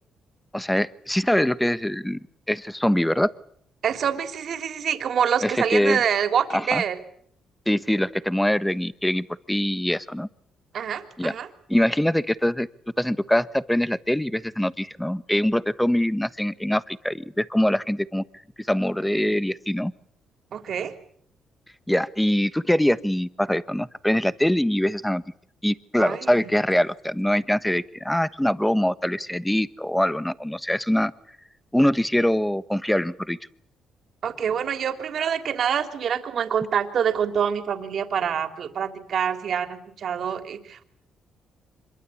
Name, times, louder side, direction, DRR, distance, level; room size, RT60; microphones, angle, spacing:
voice 1, 0.5-2.2 2.5-3.3 5.4-6.0 6.5-6.8 7.7-10.3 11.2-11.3 11.7-12.7 13.0-18.2 18.6-19.9 21.9-25.2 25.6-31.1 31.7-33.4, left 1 dB, 5° left, 15 dB, 1.2 m, -23 dB
voice 2, 3.8-7.0 10.7-11.5 20.5-20.9 26.0-26.5 34.2-40.9, right 8 dB, 60° right, 8 dB, 3.3 m, -26 dB
26.0 x 22.5 x 8.5 m, 0.64 s
cardioid pair, 90°, 0 cm